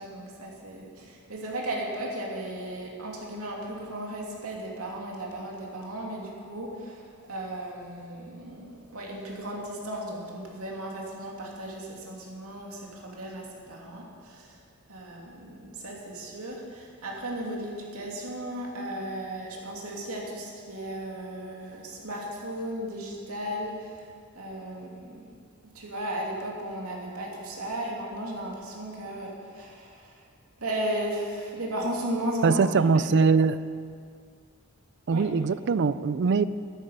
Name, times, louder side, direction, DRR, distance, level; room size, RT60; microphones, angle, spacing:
voice 1, 0.0-14.6 14.9-25.3 25.7-30.3 30.6-33.0 35.1-35.2, right 1 dB, 85° right, -2 dB, 2.6 m, -35 dB
voice 2, 32.4-33.6 35.1-36.4, right 5 dB, 55° right, 15 dB, 0.4 m, -22 dB
13.0 x 11.5 x 5.4 m, 2.1 s
head